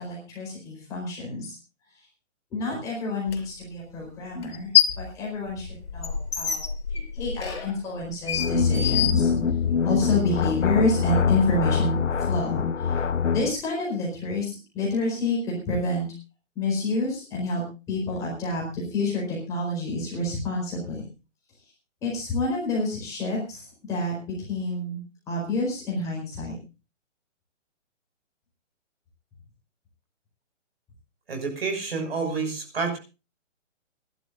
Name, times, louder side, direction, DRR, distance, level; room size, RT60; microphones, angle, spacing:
voice 1, 0.0-1.6 1.9-2.1 2.5-4.7 5.0-9.3 9.8-13.0 13.3-16.1 16.5-21.0 22.0-25.0 25.3-26.5, left 2 dB, 10° left, -4 dB, 4.5 m, -28 dB
sound 1, 3.3-3.4 4.4-5.1 5.5-9.8, left 10 dB, 50° left, 5.1 m, -26 dB
sound 2, 8.3-13.5, left 6 dB, 70° left, 1.5 m, -24 dB
voice 2, 31.3-33.0, right 4 dB, 50° right, 5 dB, 6.1 m, -29 dB
28.5 x 12.0 x 2.6 m, 0.31 s
hypercardioid pair, 175°, 37 cm